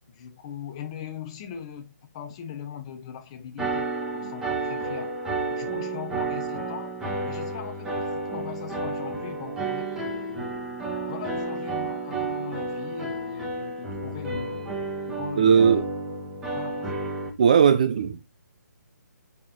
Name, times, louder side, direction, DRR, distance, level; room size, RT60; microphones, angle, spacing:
voice 1, 0.1-5.2 5.5-7.0 7.2-10.7 11.1-14.7 15.1-15.9 16.5-17.1, left 8 dB, 20° left, 1.0 m, -40 dB
sound 1, 3.6-17.3, right 3 dB, 5° right, 1.3 m, -31 dB
voice 2, 15.4-15.8 17.4-18.2, right 7 dB, 25° right, 0.4 m, -18 dB
7.6 x 6.2 x 3.7 m
hypercardioid pair, 170°, 10 cm